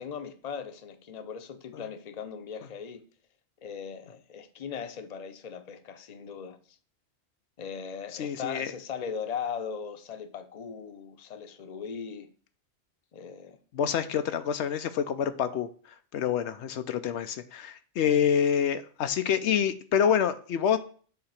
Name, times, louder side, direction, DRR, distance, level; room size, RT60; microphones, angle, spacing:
voice 1, 0.0-3.0 3.6-6.8 7.6-12.3 13.1-13.6 18.0-18.2, left 6 dB, 45° left, 0.7 m, -39 dB
voice 2, 8.2-8.7 13.7-15.7 16.1-20.8, left 8 dB, 90° left, 0.9 m, -27 dB
7.3 x 2.9 x 5.6 m
omnidirectional pair, 1.1 m